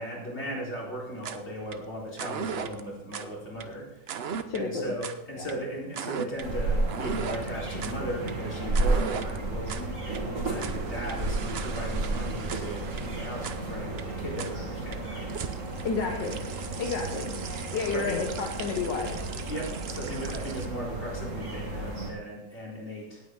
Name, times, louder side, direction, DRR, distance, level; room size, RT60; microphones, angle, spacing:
voice 1, 0.0-4.1 4.5-15.2 17.9-18.2 19.4-23.2, equal, 35° left, -4 dB, 4.6 m, -37 dB
sound 1, 1.1-20.7, right 7 dB, 60° right, 0.6 m, -39 dB
voice 2, 4.5-4.9 5.3-5.5 15.8-16.4 16.8-17.3 17.7-19.2, left 5 dB, 75° left, 2 dB, 1.8 m, -30 dB
sound 2, 6.4-22.1, right 2 dB, 45° right, 2.5 m, -32 dB
18.0 x 9.1 x 3.9 m, 0.88 s
omnidirectional pair, 2.0 m